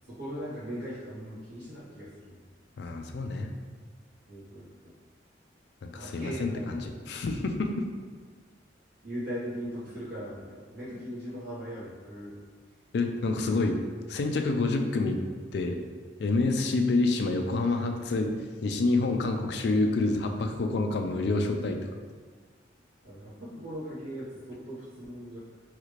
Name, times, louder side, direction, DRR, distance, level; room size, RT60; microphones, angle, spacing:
voice 1, 0.2-2.4 4.3-4.9 5.9-6.6 9.0-12.4 23.0-25.4, equal, 70° right, -12 dB, 1.2 m, -39 dB
voice 2, 2.8-3.5 5.8-7.9 12.9-13.8 14.1-15.2 15.5-15.8 16.2-18.3 18.6-21.8, left 3 dB, 65° left, 4 dB, 0.3 m, -27 dB
3.2 x 2.4 x 3.1 m, 1.5 s
head